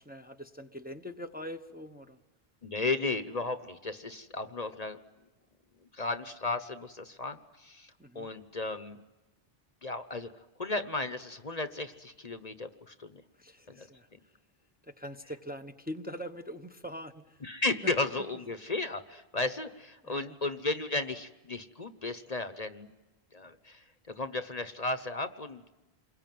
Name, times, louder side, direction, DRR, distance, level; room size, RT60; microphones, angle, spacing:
voice 1, 0.0-2.2 8.0-8.3 13.3-14.4 14.8-17.4 17.8-17.9 20.0-20.4, equal, 10° right, 6 dB, 1.0 m, -43 dB
voice 2, 2.6-5.0 5.9-9.0 9.8-10.3 10.6-13.2 13.7-13.9 15.2-15.4 17.4-22.9 23.3-25.7, left 2 dB, 40° left, 10 dB, 1.1 m, -34 dB
28.0 x 22.0 x 9.3 m, 1.1 s
omnidirectional pair, 1.0 m